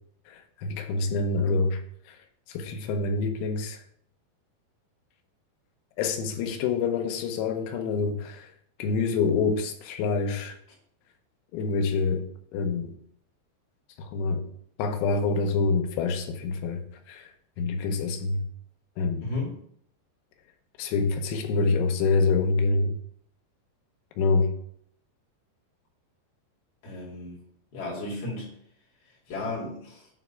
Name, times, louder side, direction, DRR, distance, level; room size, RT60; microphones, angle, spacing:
voice 1, 0.3-2.2 2.5-3.8 6.0-8.5 8.8-10.6 11.5-12.2 12.5-12.9 14.0-14.5 14.8-17.3 17.6-18.4 19.0-19.3 20.8-23.0 24.2-24.5, left 4 dB, 85° left, 3.2 m, -26 dB
voice 2, 19.2-19.6 26.8-27.4 27.7-28.5 29.3-30.1, left 2 dB, 55° left, 4.1 m, -34 dB
9.4 x 3.4 x 5.6 m
omnidirectional pair, 5.4 m